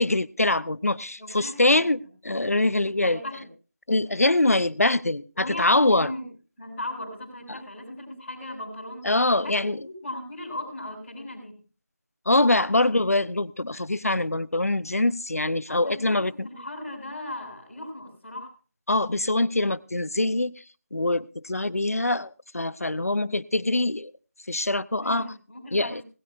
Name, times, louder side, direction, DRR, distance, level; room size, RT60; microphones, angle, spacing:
voice 1, 0.0-2.0 2.2-3.2 3.9-6.1 7.5-7.6 9.0-9.8 12.3-16.5 18.9-20.5 20.9-24.1 24.5-25.3 25.7-26.0, left 2 dB, 65° left, 0.7 m, -24 dB
voice 2, 1.2-1.8 3.0-3.5 5.3-6.3 6.6-9.1 9.4-11.6 15.7-18.5 25.0-26.0, left 1 dB, 5° left, 4.3 m, -37 dB
19.5 x 13.0 x 2.6 m
figure-of-eight pair, 175°, 9 cm